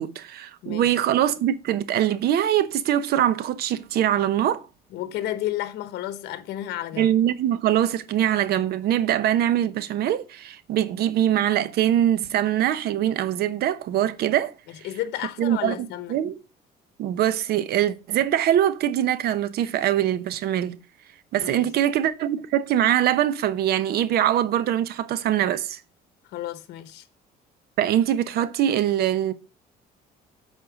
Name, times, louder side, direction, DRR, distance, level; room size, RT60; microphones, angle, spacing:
voice 1, 0.0-4.7 7.0-14.9 15.4-16.3 17.0-20.8 21.3-25.8 27.8-29.3, right 11 dB, 70° right, 0.8 m, -23 dB
voice 2, 4.9-7.1 14.7-16.1 21.4-21.6 26.3-27.1, left 13 dB, 80° left, 0.9 m, -32 dB
8.0 x 4.3 x 6.1 m
cardioid pair, 110°, 17 cm